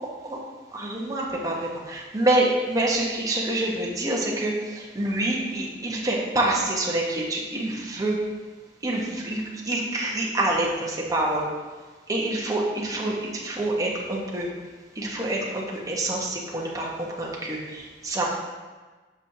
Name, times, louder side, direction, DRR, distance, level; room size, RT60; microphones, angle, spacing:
voice 1, 0.7-8.2 8.8-11.4 12.1-14.5 14.9-18.3, right 1 dB, 20° right, -3 dB, 1.1 m, -26 dB
7.2 x 6.1 x 2.8 m, 1.3 s
head